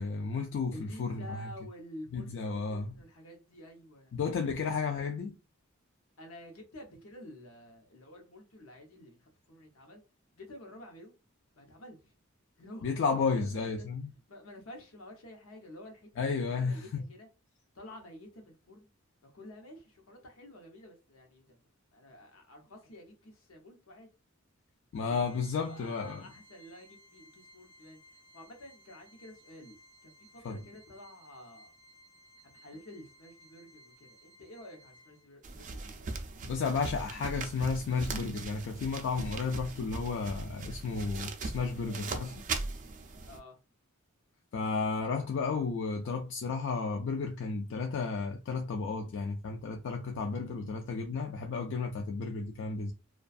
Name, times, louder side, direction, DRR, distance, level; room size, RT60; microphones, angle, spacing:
voice 1, 0.0-1.5 2.1-2.9 4.1-5.4 12.8-14.1 16.2-17.0 24.9-26.2 30.4-30.6 36.4-42.5 44.5-52.9, left 4 dB, 60° left, 0.3 m, -33 dB
voice 2, 0.7-4.3 6.2-10.0 10.3-11.1 11.5-12.1 12.6-12.9 13.3-13.9 14.3-17.3 17.7-18.9 19.2-21.6 21.9-24.1 25.0-31.7 32.4-36.7 43.3-43.6, left 1 dB, 80° left, 0.8 m, -50 dB
Organ, 24.9-35.5, equal, 10° left, 0.6 m, -59 dB
sound 1, 35.4-43.4, right 3 dB, 40° right, 0.4 m, -39 dB
2.5 x 2.3 x 2.3 m
head